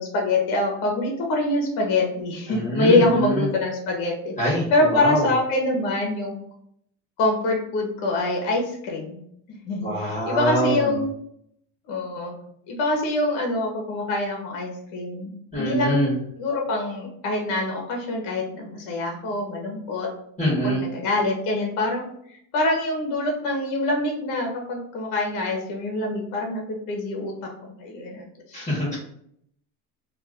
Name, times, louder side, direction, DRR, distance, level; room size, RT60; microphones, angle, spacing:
voice 1, 0.0-4.3 4.7-6.3 7.2-9.2 9.5-11.1 11.9-12.3 12.7-15.3 15.6-16.1 16.4-20.1 20.6-22.0 22.3-28.8, left 2 dB, 65° left, 1 dB, 1.1 m, -25 dB
voice 2, 2.5-3.5 4.4-5.2 9.8-10.9 15.5-16.1 20.4-20.8 28.5-29.0, equal, 20° left, -6 dB, 1.3 m, -24 dB
2.6 x 2.5 x 3.5 m, 0.69 s
cardioid pair, 130°, 35 cm